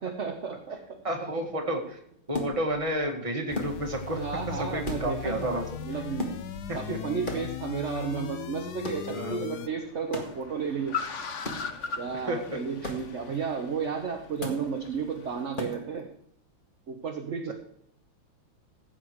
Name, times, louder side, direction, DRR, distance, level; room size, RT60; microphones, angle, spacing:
voice 1, 0.0-1.0 4.1-6.3 6.7-11.0 12.0-16.1 16.9-17.5, right 6 dB, 45° right, 3 dB, 1.2 m, -33 dB
voice 2, 1.0-2.0 2.3-4.2 4.5-5.7 6.7-7.0 9.1-9.4 12.3-12.6, right 1 dB, 15° right, 2 dB, 1.9 m, -31 dB
sound 1, 2.3-3.0 3.5-4.2 4.4-4.5 4.8-5.6 6.2-6.9 7.3-7.8 8.8-9.2 10.1-10.5 11.4-11.9 12.8-13.3 14.4-14.8 15.5-16.0, left 1 dB, 25° left, 1.9 m, -37 dB
sound 2, 3.5-9.7, left 10 dB, 65° left, 1.1 m, -38 dB
Car, 8.1-15.5, left 6 dB, 45° left, 1.1 m, -40 dB
15.5 x 8.2 x 4.8 m, 0.70 s
omnidirectional pair, 2.2 m